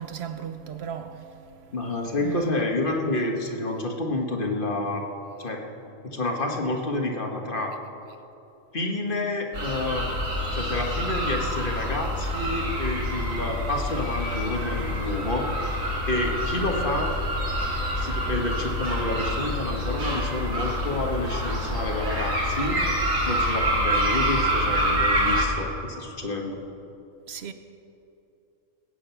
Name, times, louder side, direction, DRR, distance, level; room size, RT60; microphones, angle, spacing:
voice 1, 0.0-1.6 2.2-2.7 27.3-27.5, right 8 dB, 55° right, 1.0 m, -35 dB
voice 2, 1.7-5.0 5.4-5.7 6.0-7.8 8.7-10.2 10.5-15.5 16.1-17.2 17.9-22.8 23.3-26.6, left 2 dB, 40° left, 1.7 m, -29 dB
sound 1, 9.5-25.4, equal, 80° right, 2.6 m, -27 dB
20.0 x 8.9 x 5.8 m
omnidirectional pair, 1.4 m